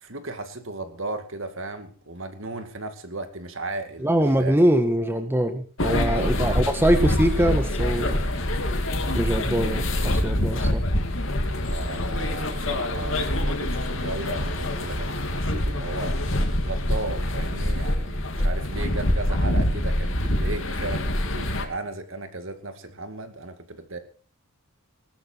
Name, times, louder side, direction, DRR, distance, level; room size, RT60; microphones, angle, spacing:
voice 1, 0.0-4.6 6.1-6.6 11.6-16.2 16.6-24.0, right 2 dB, 60° right, 8 dB, 2.4 m, -35 dB
voice 2, 4.0-8.2 9.1-10.8, right 1 dB, 10° right, 7 dB, 1.4 m, -23 dB
sound 1, 5.8-21.6, left 1 dB, 60° left, 2.7 m, -25 dB
19.5 x 13.0 x 4.6 m, 0.39 s
head